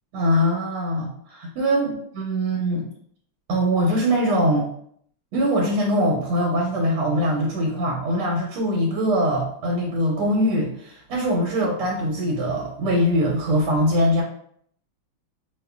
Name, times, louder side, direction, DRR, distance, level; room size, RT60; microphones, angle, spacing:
voice 1, 0.1-2.8 3.5-4.7 5.3-14.2, equal, 90° right, -2 dB, 1.5 m, -22 dB
5.2 x 2.1 x 2.3 m, 0.64 s
omnidirectional pair, 2.4 m